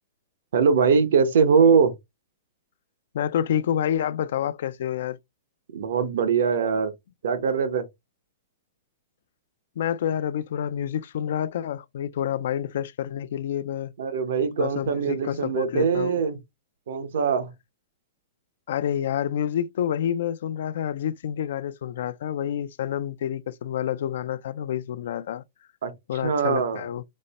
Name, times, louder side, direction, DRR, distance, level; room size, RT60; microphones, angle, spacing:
voice 1, 0.5-1.9 5.7-6.9 7.2-7.8 14.0-16.4 16.9-17.5 25.8-25.9 26.2-26.8, right 6 dB, 75° right, 0.9 m, -22 dB
voice 2, 3.1-5.2 9.8-13.9 14.6-16.2 18.7-25.4 26.1-27.0, left 10 dB, 70° left, 0.4 m, -28 dB
5.2 x 2.1 x 4.0 m
hypercardioid pair, 145°, 0 cm